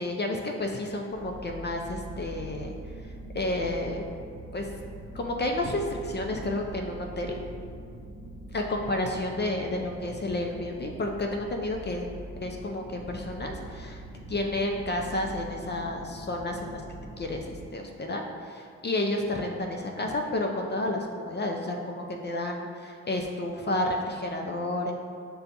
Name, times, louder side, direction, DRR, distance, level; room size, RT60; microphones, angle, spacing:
voice 1, 0.0-2.7 3.3-4.0 4.5-4.7 5.1-7.4 8.5-12.1 12.4-14.0 14.3-16.8 17.2-24.9, left 1 dB, 35° left, 1 dB, 0.5 m, -31 dB
sound 1, 1.1-17.6, right 1 dB, 20° right, 1.1 m, -43 dB
6.4 x 2.3 x 2.6 m, 2.2 s
supercardioid pair, 45°, 33 cm